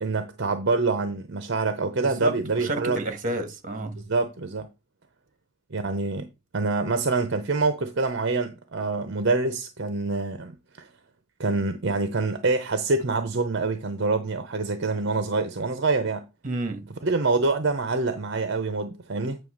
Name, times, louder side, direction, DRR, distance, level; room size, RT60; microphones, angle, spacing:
voice 1, 0.0-3.0 4.0-4.7 5.7-6.3 6.5-10.9 11.4-16.2 17.0-19.4, right 3 dB, 60° right, 0.8 m, -26 dB
voice 2, 2.0-4.0 16.4-16.9, right 2 dB, 40° right, 1.7 m, -30 dB
8.9 x 3.2 x 6.4 m
head